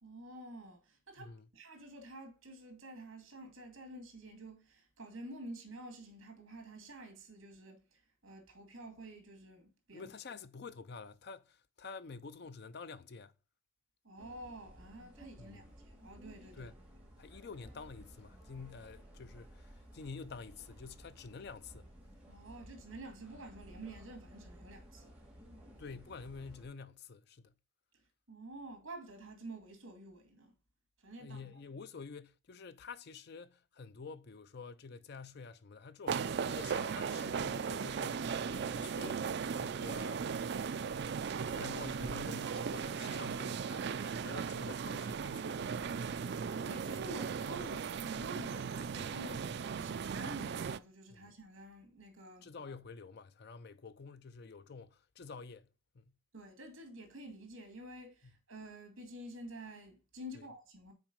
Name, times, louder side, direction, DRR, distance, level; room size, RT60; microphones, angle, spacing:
voice 1, 0.0-10.1 14.0-16.7 22.3-25.1 28.3-30.5 31.0-31.5 46.6-52.5 56.3-60.9, right 1 dB, 70° right, 2.4 m, -49 dB
voice 2, 9.9-13.3 15.4-15.6 16.6-16.7 17.2-21.9 25.8-27.5 31.2-39.3 39.6-40.3 40.6-41.1 41.5-43.9 44.2-45.8 51.1-51.3 52.4-55.7 55.9-56.1 58.2-58.3 60.3-60.5, left 4 dB, 50° left, 0.4 m, -49 dB
sound 1, 14.2-26.7, equal, 5° right, 1.9 m, -56 dB
sound 2, 36.1-50.8, right 6 dB, 50° right, 0.3 m, -37 dB
5.9 x 4.5 x 5.3 m
head